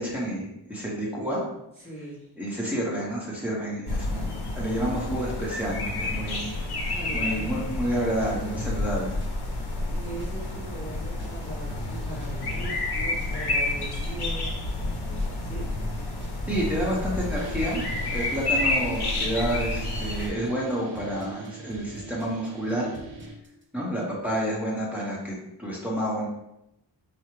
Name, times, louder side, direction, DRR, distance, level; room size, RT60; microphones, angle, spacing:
voice 1, 0.0-1.4 2.4-9.2 16.5-17.8 18.1-22.9 23.7-26.3, right 1 dB, 5° right, -6 dB, 1.3 m, -29 dB
voice 2, 1.8-2.3 6.8-7.5 9.5-14.6 15.4-15.8, right 1 dB, 15° left, -8 dB, 1.1 m, -40 dB
sound 1, 3.9-20.3, left 2 dB, 60° left, 1.1 m, -30 dB
sound 2, 7.7-23.6, right 1 dB, 25° right, 0.7 m, -47 dB
sound 3, 17.3-23.4, right 4 dB, 70° right, 0.8 m, -43 dB
4.5 x 2.4 x 3.2 m, 0.83 s
cardioid pair, 70°, 44 cm